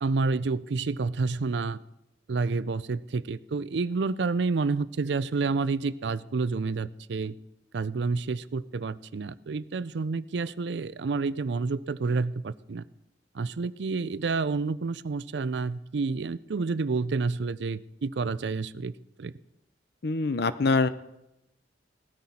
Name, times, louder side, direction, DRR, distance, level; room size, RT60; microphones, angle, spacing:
voice 1, 0.0-1.8 2.3-7.3 7.7-12.8 13.3-18.9 19.2-19.3, right 4 dB, 65° right, 16 dB, 0.5 m, -29 dB
voice 2, 20.0-20.9, left 3 dB, 60° left, 13 dB, 0.6 m, -24 dB
18.0 x 13.5 x 4.3 m, 0.88 s
head